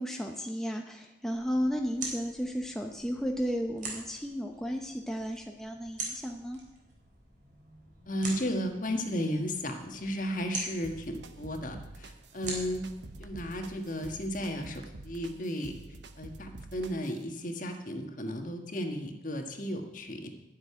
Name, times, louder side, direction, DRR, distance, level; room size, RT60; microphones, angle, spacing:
voice 1, 0.0-6.6, equal, ahead, 2 dB, 0.7 m, -33 dB
sound 1, 1.3-14.1, right 3 dB, 45° right, 3.9 m, -44 dB
voice 2, 8.1-12.8 13.2-15.7 16.2-20.3, equal, 45° left, 4 dB, 1.6 m, -34 dB
sound 2, 10.8-17.2, right 2 dB, 70° right, 0.9 m, -48 dB
12.0 x 6.7 x 9.8 m, 0.97 s
head